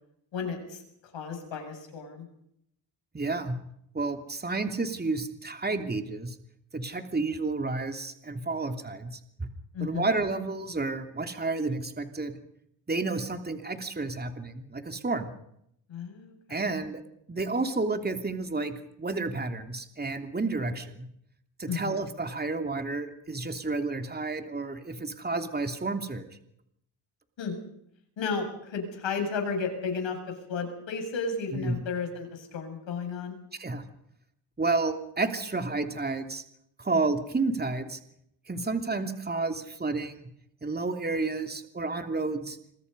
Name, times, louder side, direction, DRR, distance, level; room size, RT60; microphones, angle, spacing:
voice 1, 0.3-0.8 1.1-2.3 9.7-10.1 15.9-16.6 21.7-22.0 27.4-27.6 28.2-33.4 38.5-38.7, left 5 dB, 65° left, 4 dB, 7.6 m, -33 dB
voice 2, 3.1-3.6 3.9-6.4 6.7-9.5 9.8-12.4 12.9-15.3 16.5-17.0 17.3-21.1 21.6-26.3 31.5-31.8 33.5-33.8 34.6-36.4 36.8-38.0 38.5-40.1 40.6-42.6, right 3 dB, 20° right, 6 dB, 3.0 m, -31 dB
26.5 x 23.5 x 5.5 m, 0.74 s
cardioid pair, 85°, 49 cm